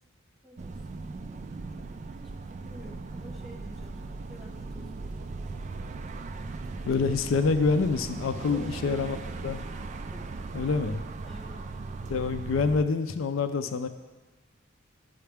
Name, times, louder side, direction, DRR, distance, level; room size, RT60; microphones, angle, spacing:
voice 1, 0.4-0.8 1.8-1.9 2.2-4.0 4.3-5.3 8.4-9.2 10.1-10.3 11.2-11.6, equal, ahead, -4 dB, 1.3 m, -49 dB
sound 1, 0.6-12.8, right 3 dB, 35° right, 0.3 m, -38 dB
voice 2, 6.9-9.2 9.4-9.6 10.5-11.0 12.1-13.9, left 4 dB, 80° left, 9 dB, 0.5 m, -26 dB
13.0 x 5.7 x 3.5 m, 1.3 s
head